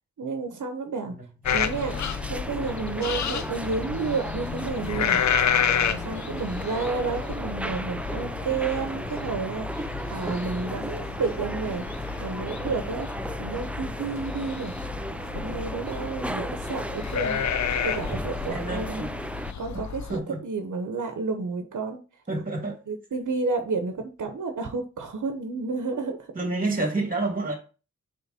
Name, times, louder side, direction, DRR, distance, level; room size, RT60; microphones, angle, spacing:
voice 1, 0.2-1.1 1.5-2.0 2.3-5.2 5.9-11.8 12.2-13.1 13.4-14.7 15.3-17.4 17.8-19.1 19.6-22.0 22.9-26.2, right 4 dB, 80° right, 1.0 m, -31 dB
sound 1, 1.4-20.2, left 7 dB, 65° left, 0.5 m, -31 dB
sound 2, 1.4-19.5, right 1 dB, 5° right, 0.3 m, -35 dB
voice 2, 18.5-19.2 19.7-19.8 20.1-20.4 22.3-22.8 26.3-27.6, right 2 dB, 30° right, 1.7 m, -29 dB
6.8 x 3.4 x 4.3 m
wide cardioid pair, 110°, 30 cm